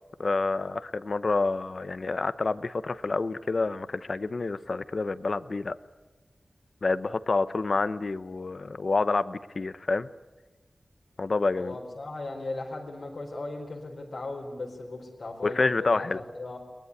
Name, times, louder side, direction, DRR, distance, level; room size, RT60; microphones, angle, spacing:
voice 1, 0.2-5.8 6.8-10.1 11.2-11.8 15.4-16.2, left 3 dB, 60° left, 14 dB, 0.8 m, -28 dB
voice 2, 11.6-16.0 16.3-16.6, left 2 dB, 80° left, -1 dB, 4.3 m, -37 dB
23.0 x 20.0 x 9.7 m, 1.2 s
wide cardioid pair, 95°, 0 cm